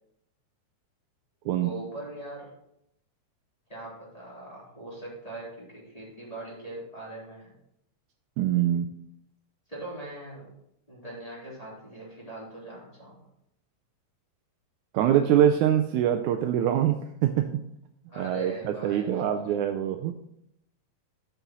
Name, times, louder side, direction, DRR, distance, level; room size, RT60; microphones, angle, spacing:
voice 1, 1.4-2.5 3.7-7.5 9.7-10.5 10.9-13.3 18.0-19.6, right 2 dB, 10° left, -7 dB, 3.2 m, -41 dB
voice 2, 8.4-8.9 14.9-17.5 18.2-20.1, right 10 dB, 80° right, 6 dB, 1.8 m, -24 dB
12.5 x 6.9 x 3.0 m, 0.77 s
omnidirectional pair, 3.7 m